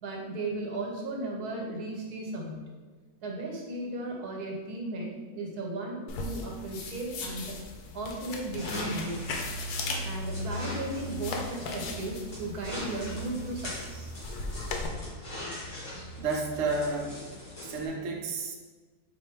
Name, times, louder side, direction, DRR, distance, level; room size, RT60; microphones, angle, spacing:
voice 1, 0.0-2.6 3.2-7.6 7.9-9.2 10.0-14.1, right 2 dB, 80° right, 0 dB, 1.4 m, -35 dB
sound 1, 6.1-14.9, left 3 dB, 85° left, 1.2 m, -39 dB
sound 2, 8.5-17.9, left 1 dB, 65° left, 2.2 m, -39 dB
voice 2, 16.2-17.2 17.7-18.5, right 3 dB, 60° right, 0 dB, 0.9 m, -31 dB
4.2 x 2.6 x 4.4 m, 1.4 s
omnidirectional pair, 1.6 m